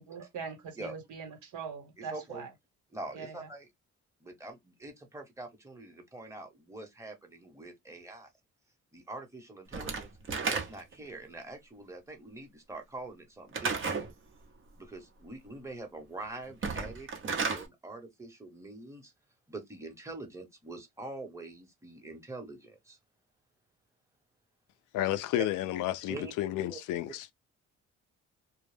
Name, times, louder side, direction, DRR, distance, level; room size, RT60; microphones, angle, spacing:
voice 1, 0.1-2.5 3.1-3.5, right 5 dB, 75° right, 1.1 m, -42 dB
voice 2, 2.0-2.4 2.9-3.7 4.2-8.3 8.9-10.1 10.4-13.8 14.8-17.1 17.4-19.1 19.5-23.0 26.1-26.3 26.7-26.8, right 2 dB, 10° right, 1.0 m, -44 dB
Slam / Wood, 9.7-11.0 13.5-14.1 16.5-17.7, right 4 dB, 45° right, 0.8 m, -32 dB
voice 3, 24.9-27.3, left 13 dB, 85° left, 0.5 m, -31 dB
2.2 x 2.0 x 3.2 m
cardioid pair, 90°, 30 cm